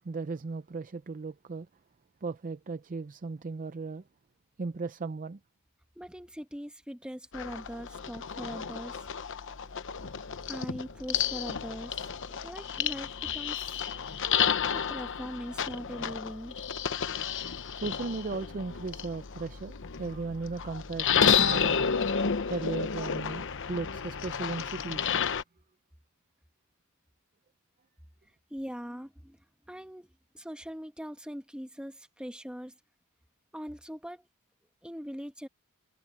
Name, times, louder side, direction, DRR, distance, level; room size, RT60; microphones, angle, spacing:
voice 1, 0.0-1.7 2.2-4.0 4.6-5.4 17.7-21.8 22.5-25.1, right 4 dB, 40° right, 0.5 m, -36 dB
voice 2, 6.0-9.1 10.5-13.9 14.1-14.2 14.7-16.6 28.5-29.4 29.7-30.1 30.3-32.7 33.5-34.3 34.8-35.5, equal, 5° right, 1.2 m, -41 dB
sound 1, 7.3-25.4, left 7 dB, 60° left, 0.9 m, -31 dB
head